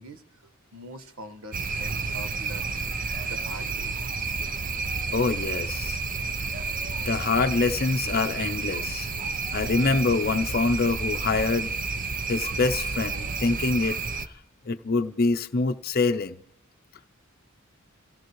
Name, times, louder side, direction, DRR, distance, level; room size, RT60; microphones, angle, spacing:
voice 1, 0.0-2.9 3.2-3.9, right 1 dB, 85° right, 1.2 m, -44 dB
sound 1, 1.5-14.3, right 4 dB, 40° right, 0.7 m, -30 dB
voice 2, 5.1-6.0 7.1-9.1 9.5-11.7 12.3-14.0 14.7-16.4, left 3 dB, 50° left, 0.6 m, -25 dB
26.5 x 16.0 x 3.1 m
head